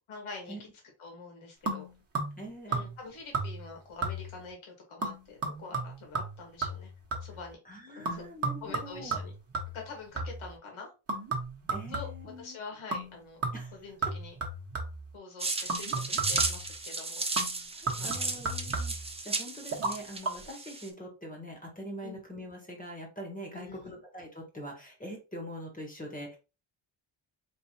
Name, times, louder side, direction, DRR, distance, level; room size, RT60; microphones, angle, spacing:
voice 1, 0.1-0.6 1.0-1.9 2.7-6.9 7.2-7.6 7.9-8.2 8.6-9.3 9.7-10.9 11.9-13.4 13.7-14.3 15.1-17.2 17.9-18.4 22.0-22.2 23.5-24.0, left 4 dB, 75° left, 1 dB, 1.7 m, -45 dB
sound 1, 1.7-2.4 2.7-3.1 3.3-3.7 4.0-4.4 5.0-7.4 8.0-10.5 11.1-12.4 12.9-13.1 13.4-15.1 15.7-16.7 17.4-19.1 19.7-19.9 20.2-20.3, right 3 dB, 30° right, 1.3 m, -34 dB
voice 2, 2.4-2.8 7.6-9.2 11.7-12.6 13.5-13.7 17.7-18.9 19.2-26.4, equal, 15° left, 1 dB, 1.5 m, -43 dB
sound 2, 15.4-20.9, right 3 dB, 15° right, 0.5 m, -34 dB
4.6 x 3.4 x 2.9 m, 0.30 s
wide cardioid pair, 160°, 49 cm